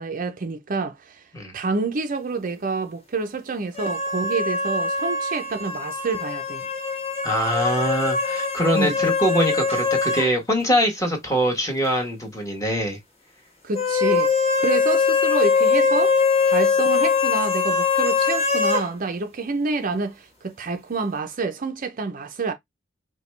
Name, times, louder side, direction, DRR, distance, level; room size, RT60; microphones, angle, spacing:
voice 1, 0.0-1.2 1.5-6.7 8.7-9.0 13.6-14.3 14.6-16.2 16.5-22.5, right 4 dB, 45° right, 0.6 m, -28 dB
sound 1, 3.7-10.3 10.6-10.7 13.7-18.9, left 5 dB, 35° left, 1.7 m, -22 dB
voice 2, 7.2-13.0, equal, 15° left, 1.5 m, -23 dB
5.0 x 2.3 x 3.2 m
head